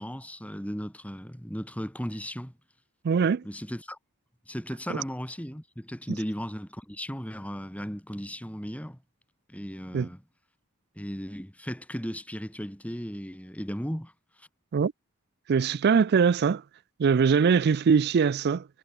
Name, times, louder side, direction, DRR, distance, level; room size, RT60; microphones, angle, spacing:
voice 1, 0.0-2.5 3.4-4.0 4.5-9.0 9.5-10.2 11.0-14.1 14.4-14.5, equal, 5° left, 7.7 m, -36 dB
voice 2, 3.0-3.4 9.9-10.1 14.7-14.9 15.5-16.6 17.0-18.7, right 6 dB, 50° right, 0.4 m, -22 dB
head